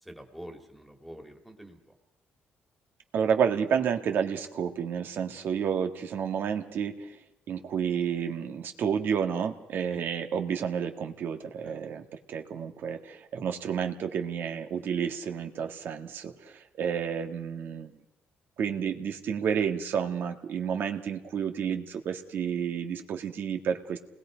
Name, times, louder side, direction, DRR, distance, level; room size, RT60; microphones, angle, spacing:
voice 1, 0.0-2.0 9.9-10.0 11.6-11.8, equal, ahead, 6 dB, 2.2 m, -46 dB
voice 2, 3.1-7.2 7.5-17.9 18.6-24.0, right 7 dB, 60° right, 5 dB, 1.8 m, -30 dB
28.5 x 20.5 x 5.1 m, 0.93 s
cardioid pair, 130°, 4 cm